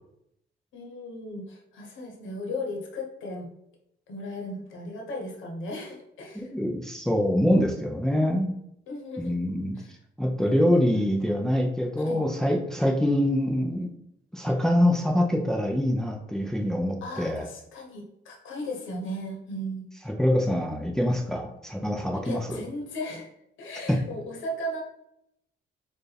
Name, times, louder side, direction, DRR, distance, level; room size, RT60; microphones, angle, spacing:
voice 1, 0.7-3.5 4.1-6.5 8.9-9.3 9.7-9.9 10.4-10.9 12.0-12.2 17.0-19.9 22.2-23.3 23.6-24.8, left 1 dB, 75° left, 1 dB, 1.0 m, -36 dB
voice 2, 6.3-8.5 9.2-9.8 10.2-13.9 14.3-17.5 20.1-22.6 23.9-24.0, equal, 5° left, 1 dB, 0.5 m, -25 dB
4.5 x 2.5 x 3.3 m, 0.79 s
cardioid pair, 90°, 20 cm